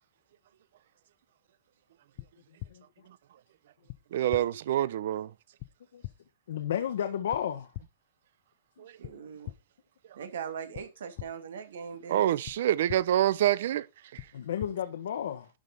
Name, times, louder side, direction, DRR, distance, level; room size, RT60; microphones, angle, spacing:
sound 1, 2.2-2.3 2.6-2.7 3.9-4.0 4.3-4.4 5.6-5.7 6.0-6.1 7.3-7.4 7.7-7.8 9.0-9.1 9.4-9.5 10.7-10.8 11.2-11.3 12.4-12.5 12.9-13.0 14.2-14.3 14.6-14.7, left 18 dB, 45° left, 0.9 m, -39 dB
voice 1, 4.1-5.3 8.8-8.9 12.1-13.9 14.1-14.3, right 12 dB, 65° right, 0.7 m, -26 dB
voice 2, 6.5-7.7 8.8-8.9 14.3-15.5, left 9 dB, 80° left, 1.4 m, -32 dB
voice 3, 9.0-9.5 10.1-12.3, right 7 dB, 85° right, 2.6 m, -40 dB
12.0 x 5.3 x 5.4 m
hypercardioid pair, 155°, 0 cm